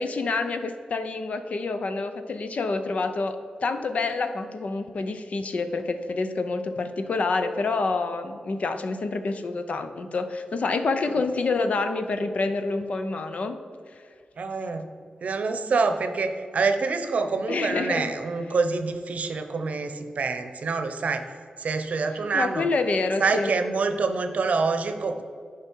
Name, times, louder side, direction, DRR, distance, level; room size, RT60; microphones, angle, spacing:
voice 1, 0.0-13.6 17.5-18.1 22.3-23.5, left 3 dB, 60° left, 8 dB, 0.6 m, -27 dB
voice 2, 14.4-14.9 15.2-21.2 21.6-22.7 23.2-25.2, right 4 dB, 65° right, 8 dB, 0.7 m, -26 dB
10.0 x 5.0 x 4.5 m, 2.2 s
wide cardioid pair, 110°, 3 cm